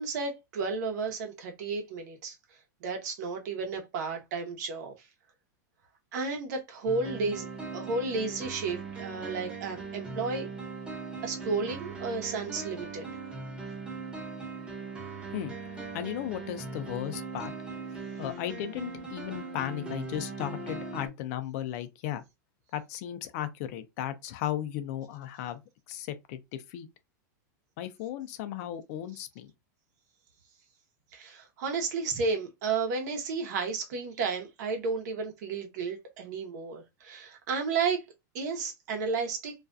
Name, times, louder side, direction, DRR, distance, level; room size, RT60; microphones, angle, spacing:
voice 1, 0.0-2.3 2.8-4.9 6.1-7.4 7.7-10.5 11.2-13.1 31.1-38.0 38.3-39.5, right 4 dB, 65° right, 0.8 m, -32 dB
sound 1, 6.9-21.1, right 3 dB, 10° right, 0.7 m, -40 dB
voice 2, 15.9-17.5 18.2-22.2 22.7-25.6 25.9-26.9 27.8-29.5, left 11 dB, 55° left, 0.4 m, -35 dB
2.4 x 2.2 x 2.4 m
supercardioid pair, 135°, 10 cm